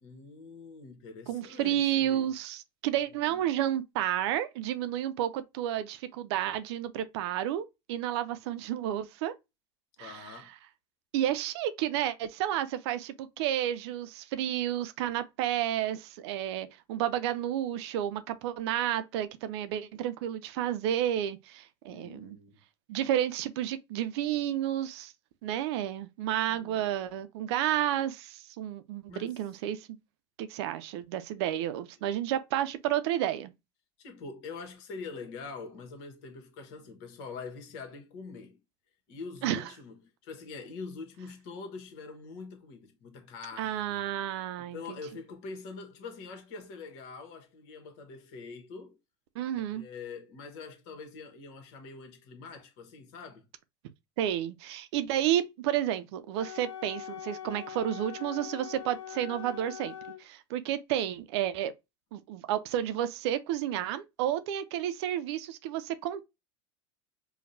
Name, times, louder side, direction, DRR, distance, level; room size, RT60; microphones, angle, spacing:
voice 1, 0.0-2.3 3.3-3.4 10.0-10.5 21.9-22.6 26.5-26.9 29.1-29.4 34.0-38.6 39.1-44.1 44.6-49.0 49.7-53.5, left 4 dB, 55° left, 1.2 m, -44 dB
voice 2, 1.3-9.3 10.0-10.3 11.1-22.4 22.9-25.1 25.4-30.0 30.4-33.5 39.4-39.7 43.6-44.8 49.4-49.8 54.2-59.9 60.2-61.7 62.1-66.2, right 11 dB, 60° right, 0.6 m, -31 dB
Wind instrument woodwind instrument, 56.3-60.2, left 10 dB, 75° left, 0.7 m, -42 dB
5.1 x 2.3 x 2.7 m
hypercardioid pair, 80°, 16 cm